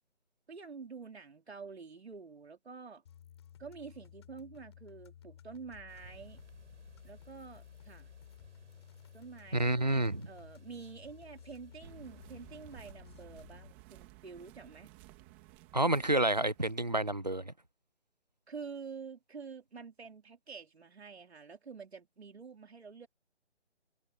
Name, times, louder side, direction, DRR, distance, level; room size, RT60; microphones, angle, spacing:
voice 1, 0.5-3.0 3.6-6.4 7.0-8.1 9.1-14.9 18.5-23.1, right 5 dB, 65° right, 3.9 m, -48 dB
sound 1, 3.0-13.7, left 10 dB, 25° left, 7.8 m, -55 dB
sound 2, 5.9-12.9, right 3 dB, 85° right, 7.0 m, -60 dB
voice 2, 9.5-10.3 15.7-17.5, right 1 dB, 40° right, 0.4 m, -29 dB
sound 3, 11.8-17.0, right 17 dB, 10° right, 2.3 m, -57 dB
hypercardioid pair, 175°, 35 cm